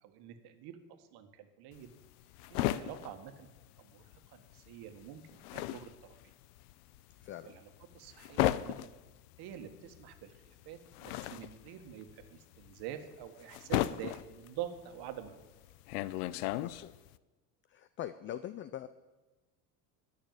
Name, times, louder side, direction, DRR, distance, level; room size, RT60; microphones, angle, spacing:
voice 1, 0.0-1.9 2.5-3.5 3.8-5.9 6.2-6.3 7.4-7.7 7.9-9.0 9.4-15.5, right 10 dB, 60° right, 7 dB, 1.6 m, -46 dB
sound 1, 1.7-4.3 4.5-17.2, left 15 dB, 85° left, 0.6 m, -36 dB
voice 2, 7.2-7.5 16.6-16.9 17.7-18.9, left 11 dB, 30° left, 14 dB, 0.4 m, -42 dB
12.0 x 6.7 x 9.0 m, 1.2 s
supercardioid pair, 120°, 45 cm